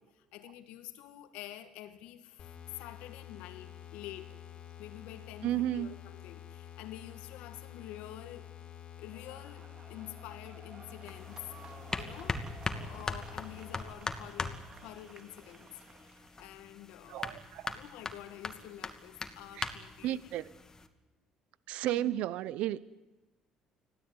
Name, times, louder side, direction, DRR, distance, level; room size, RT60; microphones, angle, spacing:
voice 1, 0.0-4.4 4.8-8.5 9.0-11.4 12.0-12.4 12.7-17.4 17.7-20.3 21.9-22.1, left 13 dB, 80° left, 9 dB, 2.1 m, -48 dB
sound 1, 2.4-13.8, left 11 dB, 55° left, 3.2 m, -49 dB
voice 2, 5.4-5.9 17.1-17.7 19.6-19.7 20.0-20.5 21.7-22.8, right 13 dB, 75° right, 19 dB, 0.7 m, -33 dB
sound 2, 9.1-16.5, right 5 dB, 40° right, 2.3 m, -55 dB
sound 3, 11.0-20.9, left 3 dB, 25° left, 2.4 m, -41 dB
25.5 x 16.5 x 9.6 m, 1.1 s
supercardioid pair, 75°, 2 cm